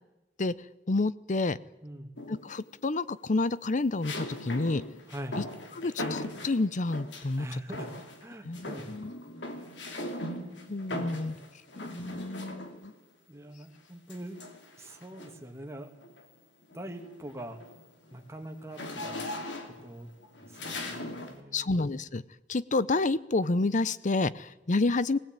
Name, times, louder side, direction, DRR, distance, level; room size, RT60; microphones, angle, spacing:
voice 1, 0.9-1.6 2.3-4.8 5.8-7.6 8.4-9.1 10.7-11.4 11.8-12.9 21.5-22.2 22.5-25.2, left 3 dB, 45° left, 17 dB, 0.7 m, -29 dB
voice 2, 1.8-2.1 5.1-5.4 7.4-7.9 8.2-8.9 9.6-9.7 10.9-11.5 13.3-14.4 14.8-15.9 16.7-17.6 18.1-19.2 19.8-20.1 20.4-21.7, right 1 dB, 15° right, 3 dB, 2.3 m, -43 dB
sound 1, 2.2-2.7 4.0-7.4 7.7-8.3 8.5-13.0 14.1-15.5 16.0-16.3 16.6-21.4, left 1 dB, 85° left, 2.7 m, -40 dB
20.5 x 16.5 x 9.0 m, 1.0 s
head